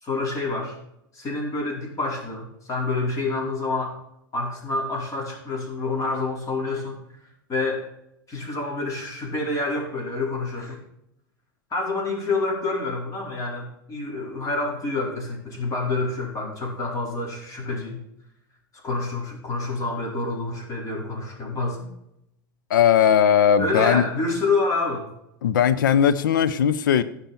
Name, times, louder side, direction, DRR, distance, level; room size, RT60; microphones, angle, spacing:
voice 1, 0.0-0.7 1.1-3.9 4.3-7.0 7.5-7.9 8.3-10.8 11.7-18.0 18.8-21.9 23.6-25.1, left 3 dB, 30° left, 4.7 m, -27 dB
voice 2, 22.7-24.0 25.4-27.0, left 9 dB, 75° left, 0.7 m, -18 dB
15.5 x 5.7 x 4.5 m
hypercardioid pair, 90°, 11 cm